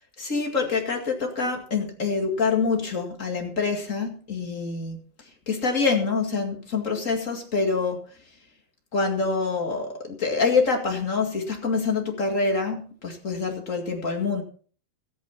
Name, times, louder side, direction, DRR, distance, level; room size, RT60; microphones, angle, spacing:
voice 1, 0.2-8.4 8.9-14.4, left 4 dB, 30° left, 2 dB, 1.4 m, -26 dB
14.0 x 9.9 x 5.8 m, 0.44 s
omnidirectional pair, 4.7 m